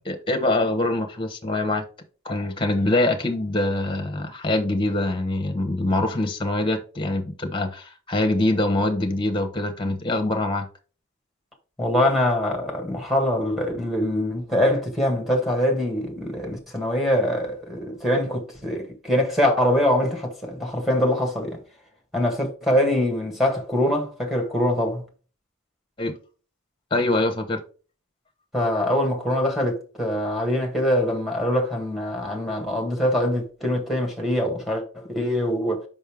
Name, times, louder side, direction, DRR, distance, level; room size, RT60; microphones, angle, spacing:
voice 1, 0.0-1.8 2.2-10.7 26.0-26.1 26.9-27.6, left 2 dB, 25° left, 0.9 m, -24 dB
voice 2, 11.8-21.6 22.1-25.0 28.5-35.8, left 1 dB, ahead, 1.6 m, -23 dB
5.4 x 5.4 x 3.5 m
head